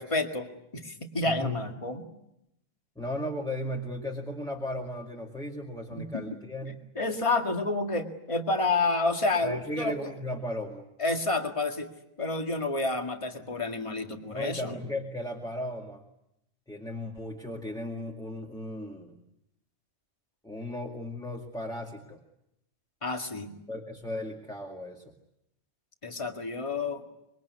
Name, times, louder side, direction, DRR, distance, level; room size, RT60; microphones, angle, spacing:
voice 1, 0.0-2.1 5.9-6.3 7.0-10.1 11.0-11.9 12.2-14.8 23.0-23.5 26.0-27.0, left 3 dB, 25° left, 4 dB, 2.1 m, -29 dB
voice 2, 1.2-1.6 3.0-6.8 9.4-10.9 14.3-16.0 16.7-19.2 20.4-22.2 23.7-25.1, left 1 dB, 5° left, 0 dB, 2.1 m, -36 dB
25.5 x 23.0 x 9.5 m, 0.85 s
omnidirectional pair, 1.4 m